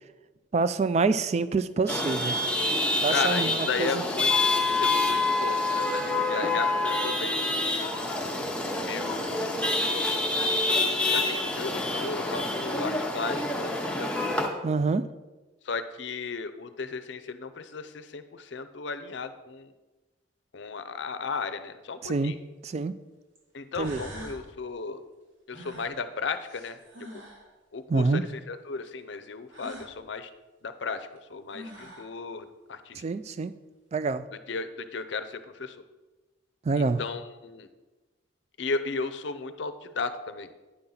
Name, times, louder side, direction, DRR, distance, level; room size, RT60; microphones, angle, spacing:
voice 1, 0.5-2.4 3.0-4.0 14.6-15.0 22.0-22.4 22.6-23.0 23.8-24.0 27.9-28.2 33.0-33.5 33.9-34.2 36.7-37.0, right 4 dB, 35° right, 14 dB, 0.3 m, -26 dB
Chatter / Vehicle horn car horn honking / Traffic noise roadway noise, 1.9-14.5, left 2 dB, 5° left, 0.8 m, -27 dB
voice 2, 3.1-7.4 7.6-7.9 8.7-10.1 10.6-14.4 15.7-19.7 20.5-22.3 23.5-25.0 25.5-26.8 27.7-30.3 30.6-33.0 34.5-35.8 36.8-37.7 38.6-40.5, left 4 dB, 65° left, 11 dB, 0.6 m, -35 dB
sound 1, 22.3-22.4 23.4-23.5 23.8-24.4 25.5-27.5 29.5-29.9 31.2-31.3 31.5-32.1, equal, 75° right, 2.4 m, -44 dB
9.8 x 5.8 x 3.9 m, 1.2 s
head